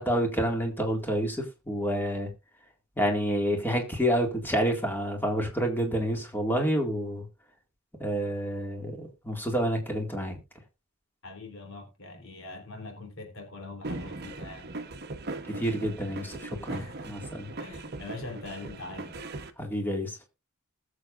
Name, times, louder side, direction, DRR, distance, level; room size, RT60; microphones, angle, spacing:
voice 1, 0.0-1.4 1.7-2.3 3.0-7.2 8.0-10.4 15.6-17.5 19.6-20.3, equal, 10° left, 2.1 m, -28 dB
voice 2, 11.2-14.7 16.7-17.3 17.6-19.2, left 2 dB, 60° left, 3.5 m, -42 dB
sound 1, 13.8-19.5, right 2 dB, 45° right, 1.0 m, -39 dB
20.0 x 6.9 x 2.5 m
head